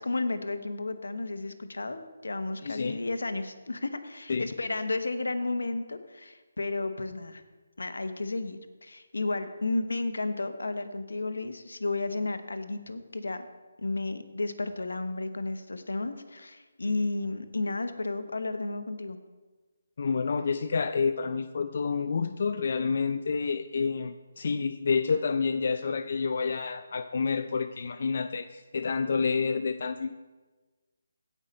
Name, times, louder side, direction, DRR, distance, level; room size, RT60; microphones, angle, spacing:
voice 1, 0.0-7.4 7.8-13.5 13.8-19.2, left 2 dB, 90° left, 9 dB, 1.0 m, -32 dB
voice 2, 2.6-3.0 4.3-4.5 20.0-30.2, left 5 dB, 55° left, 10 dB, 0.4 m, -29 dB
16.5 x 5.5 x 4.3 m, 1.3 s
hypercardioid pair, 165°, 0 cm